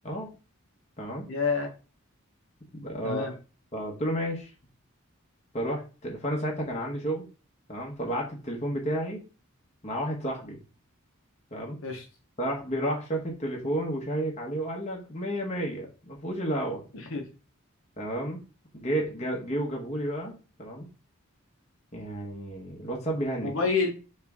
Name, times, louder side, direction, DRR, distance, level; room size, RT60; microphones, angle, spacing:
voice 1, 1.3-1.7 3.0-3.3 11.8-12.0 16.9-17.2 23.4-23.9, left 4 dB, 70° left, 2 dB, 1.0 m, -28 dB
voice 2, 2.7-3.3 3.7-4.5 5.5-7.3 7.7-9.2 9.8-10.6 11.5-11.8 12.4-16.9 18.0-18.4 18.7-20.9 21.9-23.7, right 1 dB, 30° left, -1 dB, 1.1 m, -31 dB
4.5 x 3.3 x 3.5 m, 0.34 s
head